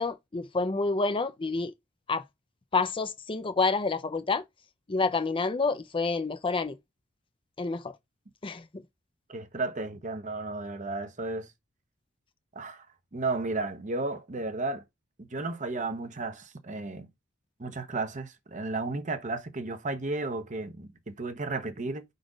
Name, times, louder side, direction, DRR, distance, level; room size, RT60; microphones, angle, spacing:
voice 1, 0.0-1.7 2.1-2.2 2.7-4.4 4.9-6.7 7.6-7.9 8.4-8.6, left 3 dB, 25° left, 0.5 m, -28 dB
voice 2, 9.3-11.5 12.5-12.9 13.1-14.8 15.3-17.1 17.6-22.0, right 3 dB, 40° right, 0.9 m, -33 dB
5.1 x 4.0 x 5.0 m
head